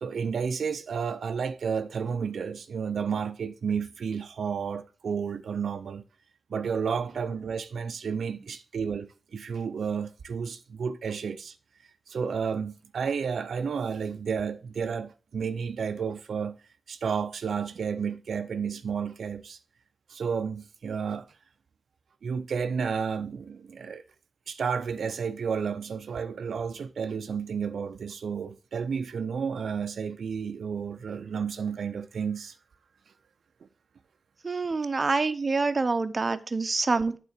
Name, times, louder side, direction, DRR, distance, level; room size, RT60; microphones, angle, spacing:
voice 1, 0.0-6.0 6.5-11.6 12.1-16.6 16.9-19.6 20.1-21.3 22.2-24.0 24.5-32.6 36.3-36.4, right 6 dB, 75° right, 0.5 m, -31 dB
voice 2, 34.4-37.2, right 3 dB, 35° right, 0.6 m, -26 dB
8.9 x 3.8 x 6.5 m
wide cardioid pair, 105°, 0 cm